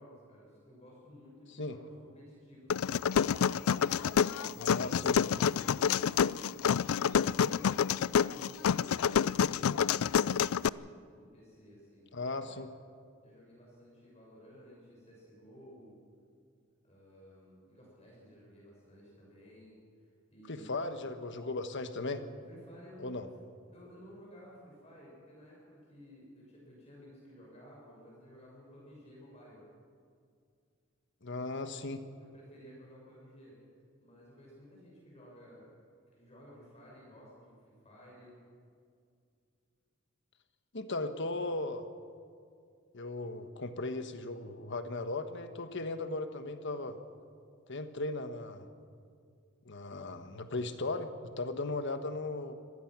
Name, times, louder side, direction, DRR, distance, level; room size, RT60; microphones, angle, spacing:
voice 1, 0.0-3.1 3.8-7.7 8.1-10.8 11.1-12.6 13.2-16.0 16.8-20.7 22.5-23.2 23.7-29.6 31.9-33.6 34.0-35.7 36.1-38.3, equal, 30° left, -4 dB, 6.5 m, -55 dB
sound 1, 2.7-10.7, left 7 dB, 85° left, 0.4 m, -28 dB
voice 2, 4.6-5.2 12.1-12.7 20.5-22.2 23.0-23.3 31.2-32.0 40.7-41.9 42.9-47.0 47.7-48.7 49.6-51.1 51.4-52.5, left 2 dB, 60° left, 9 dB, 1.4 m, -37 dB
25.0 x 18.5 x 6.1 m, 2.3 s
head